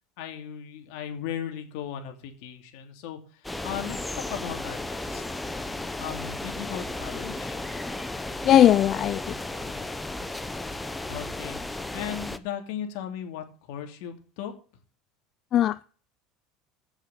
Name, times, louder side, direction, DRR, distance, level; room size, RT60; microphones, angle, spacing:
voice 1, 0.2-5.4 6.0-7.6 11.1-14.5, left 9 dB, 70° left, 2.9 m, -37 dB
sound 1, 3.4-12.4, left 2 dB, 10° left, 0.9 m, -34 dB
voice 2, 8.4-9.2 15.5-15.8, left 11 dB, 45° left, 0.4 m, -18 dB
9.1 x 7.2 x 7.7 m
supercardioid pair, 120°, 0 cm